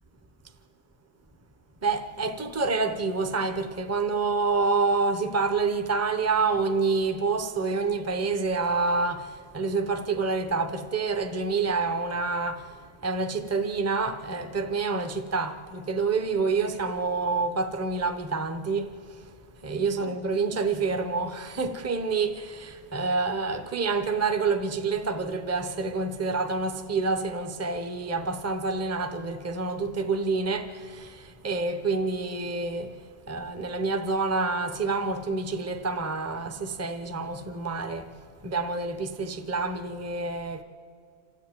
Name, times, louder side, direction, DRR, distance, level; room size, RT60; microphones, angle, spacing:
voice 1, 1.8-40.6, right 4 dB, 15° right, 0.8 m, -28 dB
26.5 x 14.0 x 9.0 m
omnidirectional pair, 1.4 m